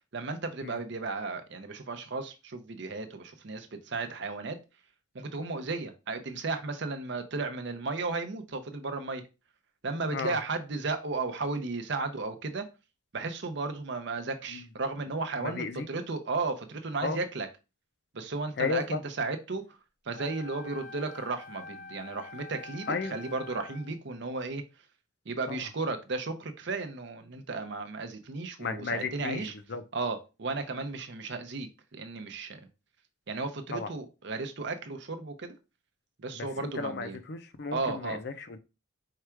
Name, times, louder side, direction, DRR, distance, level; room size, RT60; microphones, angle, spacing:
voice 1, 0.0-4.6 5.1-9.2 9.8-12.7 13.1-17.5 18.1-19.8 20.0-24.6 25.3-29.5 29.9-32.6 33.3-35.6 36.2-37.2 37.7-38.2, right 3 dB, 55° right, 0.7 m, -34 dB
voice 2, 15.4-15.8 17.0-17.2 18.6-19.0 22.9-23.2 25.5-25.6 28.6-29.4 29.7-29.8 33.7-33.9 36.3-38.6, left 4 dB, 50° left, 0.5 m, -34 dB
Wind instrument woodwind instrument, 20.1-23.9, left 4 dB, 65° left, 0.9 m, -46 dB
4.7 x 2.3 x 4.5 m
head